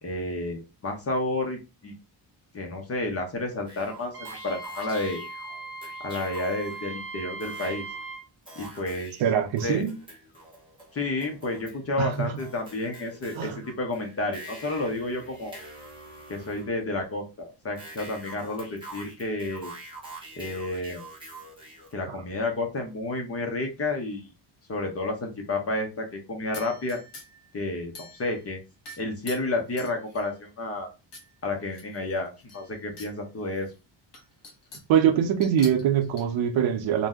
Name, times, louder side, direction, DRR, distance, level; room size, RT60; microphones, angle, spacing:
voice 1, 0.0-1.9 2.5-5.2 6.0-7.8 8.6-9.1 9.6-9.8 10.9-15.6 16.3-19.7 20.4-21.0 21.9-24.3 24.7-27.0 27.5-28.6 29.0-30.9 31.4-33.7, left 2 dB, 30° left, 0.5 m, -31 dB
sound 1, 3.7-7.1 7.4-8.0 8.5-11.8 12.1-16.8 17.8-21.9, right 1 dB, 10° right, 0.9 m, -46 dB
Wind instrument woodwind instrument, 4.1-8.2, right 3 dB, 30° right, 0.6 m, -39 dB
voice 2, 9.2-9.9 12.0-12.4 13.4-13.7 22.1-22.2 34.9-37.1, right 9 dB, 70° right, 0.6 m, -23 dB
sound 2, 26.5-27.5 27.9-28.5 28.8-30.4 31.1-31.3 31.7-33.1 33.5-33.6 34.1-35.0 35.4-36.2, left 2 dB, 55° left, 1.2 m, -45 dB
2.6 x 2.1 x 3.5 m
cardioid pair, 180°, 48 cm